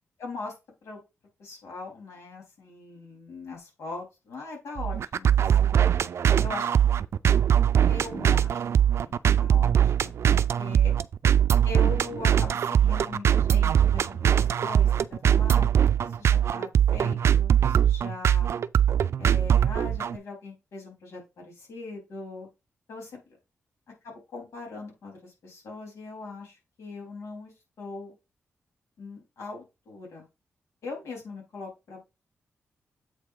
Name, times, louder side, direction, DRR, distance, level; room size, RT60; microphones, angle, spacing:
voice 1, 0.2-0.5 0.8-1.0 1.4-5.8 6.4-6.7 7.8-8.7 9.0-9.1 9.4-10.1 10.6-10.9 11.6-15.7 16.2-18.5 19.2-22.5 22.9-23.2 24.0-28.1 29.0-30.3 30.8-32.0, left 3 dB, 90° left, -1 dB, 3.8 m, -40 dB
sound 1, 4.8-20.2, right 9 dB, 70° right, 0.4 m, -22 dB
7.9 x 3.5 x 5.0 m, 0.26 s
cardioid pair, 85°, 5 cm